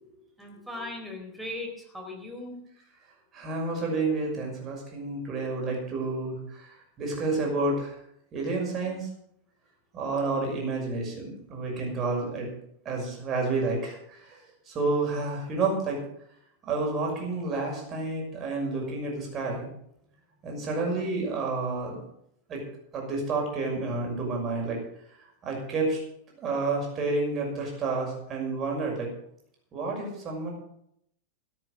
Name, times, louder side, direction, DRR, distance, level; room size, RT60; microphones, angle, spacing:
voice 1, 0.4-2.6, left 1 dB, ahead, 2 dB, 3.9 m, -38 dB
voice 2, 3.3-6.4 7.0-7.9 8.3-9.1 9.9-12.5 12.8-14.2 14.7-16.0 16.6-19.7 20.4-22.0 22.5-22.6 22.9-24.8 25.4-26.0 26.4-29.1 29.7-30.5, right 3 dB, 30° right, 0 dB, 6.0 m, -29 dB
14.5 x 9.9 x 6.6 m, 0.74 s
figure-of-eight pair, 90°, 0 cm